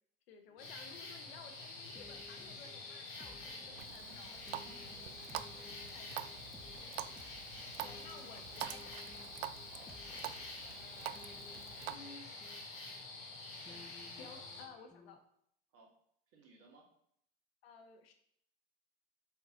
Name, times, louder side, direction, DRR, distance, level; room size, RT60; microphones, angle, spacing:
voice 1, 0.3-4.4 5.5-6.4 7.8-9.3 10.6-11.6 11.9-12.4 13.7-15.2 17.6-18.1, left 5 dB, 65° left, 6 dB, 1.0 m, -56 dB
sound 1, 0.6-14.6, left 3 dB, 45° left, 2.2 m, -48 dB
sound 2, 1.9-13.0 13.6-15.2, left 3 dB, 5° left, 0.3 m, -59 dB
voice 2, 3.6-4.3 4.6-5.7 7.8-8.1 9.6-9.9 15.7-15.9 16.3-16.9, right 2 dB, 45° right, 0 dB, 2.1 m, -62 dB
Water tap faucet, 3.8-12.0, right 12 dB, 65° right, 0.4 m, -47 dB
6.9 x 4.5 x 3.9 m, 0.71 s
figure-of-eight pair, 70°, 33 cm